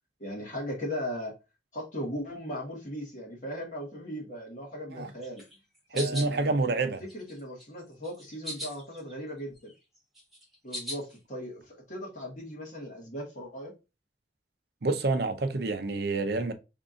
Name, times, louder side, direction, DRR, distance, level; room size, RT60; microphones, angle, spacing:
voice 1, 0.2-1.3 1.7-5.4 5.9-6.6 7.0-9.7 10.6-13.7, equal, 45° left, 1.6 m, -38 dB
sound 1, 5.2-6.3 6.8-7.7 8.0-9.1 9.4-11.2, equal, ahead, 1.2 m, -40 dB
voice 2, 5.9-7.0 14.8-16.5, right 3 dB, 65° right, 0.6 m, -28 dB
3.5 x 2.7 x 3.6 m
head